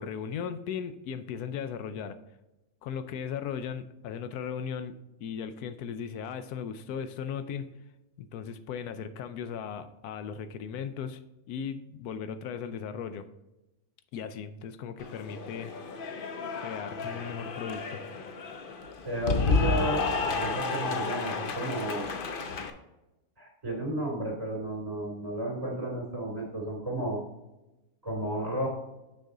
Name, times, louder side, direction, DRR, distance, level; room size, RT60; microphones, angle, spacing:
voice 1, 0.0-2.2 2.8-7.7 8.2-11.2 11.5-13.3 14.1-15.7 16.6-18.0, left 7 dB, 85° left, 11 dB, 1.1 m, -37 dB
Cheering / Applause, 15.0-22.7, left 4 dB, 55° left, 0.6 m, -31 dB
voice 2, 19.0-22.1 23.4-27.2 28.0-28.7, right 1 dB, 25° right, -2 dB, 2.7 m, -33 dB
6.5 x 6.3 x 3.7 m, 0.97 s
omnidirectional pair, 1.6 m